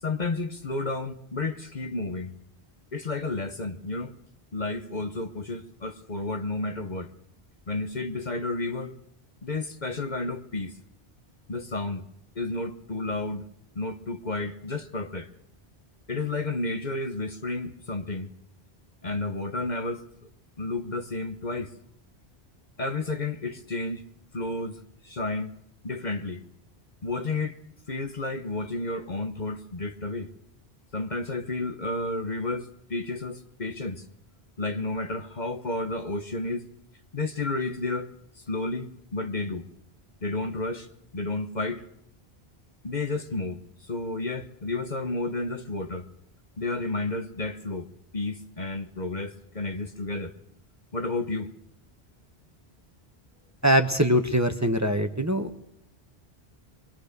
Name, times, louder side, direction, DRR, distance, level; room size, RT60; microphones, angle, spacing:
voice 1, 0.0-2.3 2.9-4.1 4.5-7.1 7.7-8.9 9.4-10.8 11.5-12.0 12.3-13.5 13.7-15.3 16.1-18.3 19.0-20.0 20.6-21.7 22.8-24.0 24.3-25.5 25.8-26.4 27.0-27.6 27.9-30.3 30.9-34.1 34.6-36.6 37.1-39.7 40.2-40.9 41.1-41.8 42.8-46.0 46.6-47.9 48.1-50.3 50.9-51.5, left 2 dB, 45° left, 1.3 m, -31 dB
voice 2, 53.6-55.5, equal, 15° right, 1.3 m, -22 dB
24.0 x 23.5 x 6.8 m
omnidirectional pair, 1.1 m